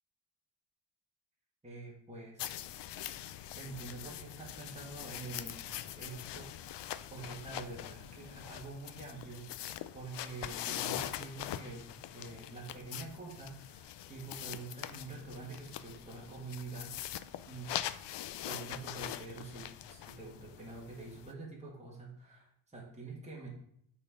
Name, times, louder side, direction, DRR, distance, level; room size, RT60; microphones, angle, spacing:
voice 1, 1.6-2.5 2.8-2.9 3.6-6.7 7.1-9.5 9.9-17.2 17.5-17.7 18.4-23.5, right 3 dB, 15° right, -4 dB, 1.9 m, -46 dB
sound 1, 2.4-21.3, left 12 dB, 75° left, 0.5 m, -43 dB
8.3 x 4.4 x 5.0 m, 0.70 s
wide cardioid pair, 125°, 42 cm